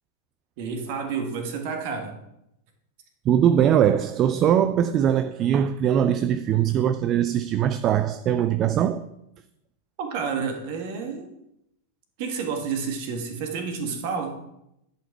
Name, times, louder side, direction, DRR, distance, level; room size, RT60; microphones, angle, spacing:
voice 1, 0.6-2.2 10.0-11.3 12.2-14.4, right 5 dB, 50° right, 1.5 m, -30 dB
voice 2, 3.3-9.1, right 9 dB, 30° right, 0.4 m, -21 dB
10.0 x 5.6 x 4.6 m
figure-of-eight pair, 90°, 0 cm